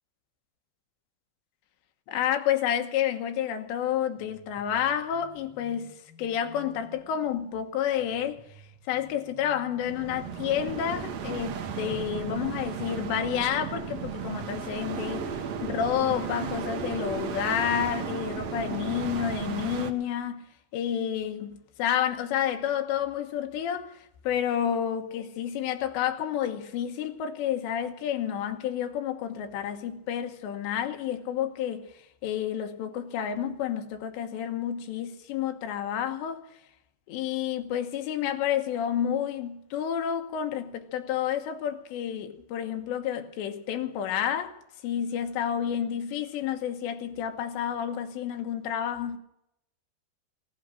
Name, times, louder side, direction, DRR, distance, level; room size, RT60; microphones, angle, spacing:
voice 1, 2.1-8.4 8.9-15.3 15.6-20.4 20.7-21.5 21.8-31.9 32.2-36.4 37.1-44.6 44.8-49.2, left 9 dB, 90° left, 3.4 m, -30 dB
sound 1, 4.2-11.8, left 2 dB, 25° left, 6.2 m, -54 dB
sound 2, 9.8-19.9, right 7 dB, 80° right, 1.5 m, -35 dB
18.0 x 12.0 x 6.5 m
omnidirectional pair, 4.9 m